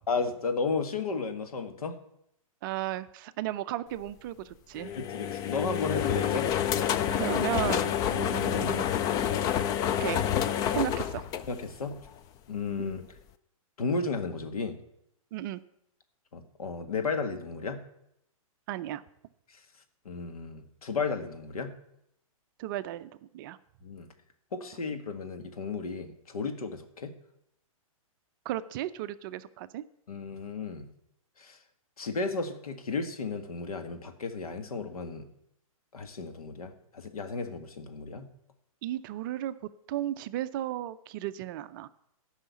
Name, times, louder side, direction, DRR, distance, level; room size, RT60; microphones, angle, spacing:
voice 1, 0.1-2.0 4.9-6.5 8.6-8.7 11.5-11.9 12.5-13.1 13.8-14.8 16.3-17.8 20.1-21.7 23.8-24.1 24.5-27.1 30.1-30.8 31.4-31.6 32.0-35.3 35.9-38.3, left 4 dB, 85° left, 7 dB, 1.8 m, -33 dB
voice 2, 2.6-4.9 7.1-8.9 10.0-10.2 10.7-11.3 12.8-12.9 15.3-15.6 18.7-19.0 22.6-23.6 28.4-29.8 38.8-39.5 39.9-41.9, right 13 dB, 35° right, 13 dB, 0.5 m, -34 dB
sound 1, 4.8-12.1, left 9 dB, 20° left, 0.4 m, -28 dB
12.0 x 5.7 x 8.3 m, 0.76 s
hypercardioid pair, 140°, 18 cm